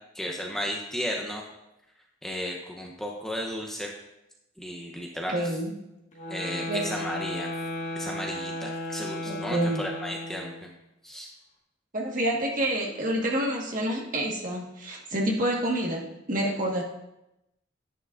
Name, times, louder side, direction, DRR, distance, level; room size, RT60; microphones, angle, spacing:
voice 1, 0.1-1.4 2.2-3.9 4.6-5.5 6.3-7.5 7.9-10.7 11.0-11.3, equal, ahead, -1 dB, 0.8 m, -34 dB
voice 2, 5.3-5.7 6.7-6.8 9.2-9.8 11.9-16.8, right 1 dB, 45° right, -1 dB, 1.6 m, -28 dB
sound 1, 6.1-10.7, left 1 dB, 35° left, 1.7 m, -35 dB
11.0 x 9.9 x 2.5 m, 0.91 s
head